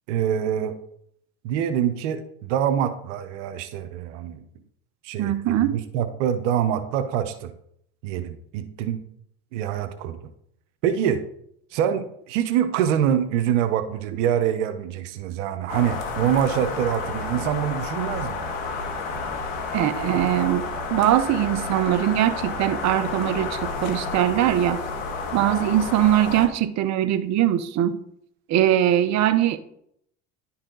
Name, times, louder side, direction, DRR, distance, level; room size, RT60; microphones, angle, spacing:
voice 1, 0.1-0.8 1.4-4.4 5.0-7.5 8.0-9.0 9.5-10.3 10.8-11.2 11.7-18.4, right 9 dB, 85° right, 10 dB, 0.8 m, -25 dB
voice 2, 5.2-5.8 19.7-20.6 20.9-24.8 25.3-28.0 28.5-29.6, right 12 dB, 50° right, 10 dB, 0.7 m, -21 dB
sound 1, 15.7-26.5, left 4 dB, 85° left, 1.5 m, -31 dB
11.0 x 4.3 x 3.8 m, 0.70 s
supercardioid pair, 85°, 35 cm